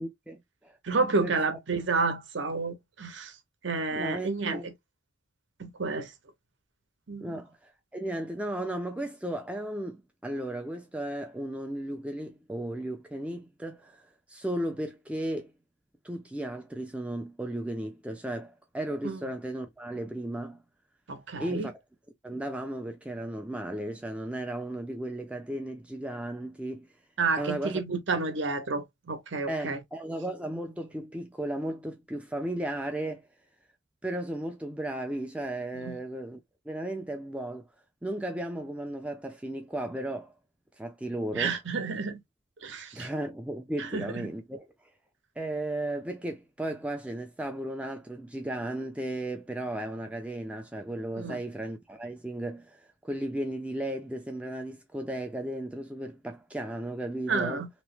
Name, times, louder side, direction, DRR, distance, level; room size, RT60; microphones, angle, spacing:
voice 1, 0.0-0.8 1.2-1.3 3.9-4.7 7.2-15.5 16.0-20.6 21.4-21.7 22.2-26.9 27.4-27.8 29.5-33.3 34.0-36.4 36.7-37.7 38.0-40.3 40.8-41.5 42.9-44.6 45.4-57.6, right 1 dB, 5° right, 0.4 m, -35 dB
voice 2, 0.8-3.3 3.6-4.7 5.6-6.1 7.1-7.4 19.0-19.2 21.1-21.7 27.2-29.8 35.7-36.0 41.3-42.2 42.6-43.1 43.8-44.3 51.1-51.4 57.3-57.7, right 4 dB, 70° right, 0.8 m, -30 dB
3.0 x 2.1 x 3.1 m
head